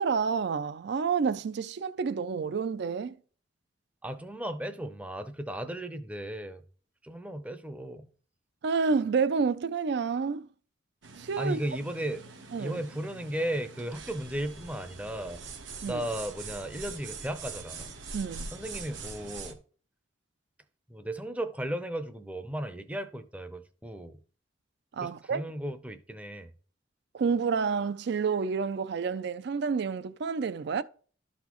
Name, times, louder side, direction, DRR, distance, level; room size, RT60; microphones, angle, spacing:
voice 1, 0.0-3.2 8.6-10.5 11.2-11.6 12.5-12.8 15.8-16.0 18.1-18.5 24.9-25.4 27.1-30.8, right 5 dB, 60° right, 0.4 m, -29 dB
voice 2, 4.0-6.6 7.0-8.1 11.4-12.2 12.6-15.4 15.9-17.9 18.5-19.6 20.9-24.2 25.0-26.5, right 1 dB, 5° right, 0.5 m, -35 dB
sound 1, 11.0-19.5, right 4 dB, 80° right, 1.0 m, -43 dB
12.5 x 4.1 x 3.0 m
head